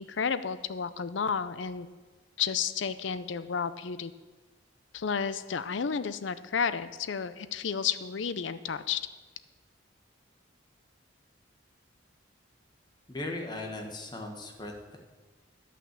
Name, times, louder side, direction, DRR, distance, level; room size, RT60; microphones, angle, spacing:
voice 1, 0.0-1.9 2.4-4.1 4.9-9.0, left 6 dB, 70° left, 14 dB, 0.5 m, -31 dB
voice 2, 13.1-15.0, left 2 dB, 20° left, 2 dB, 1.3 m, -38 dB
10.5 x 5.8 x 7.4 m, 1.3 s
head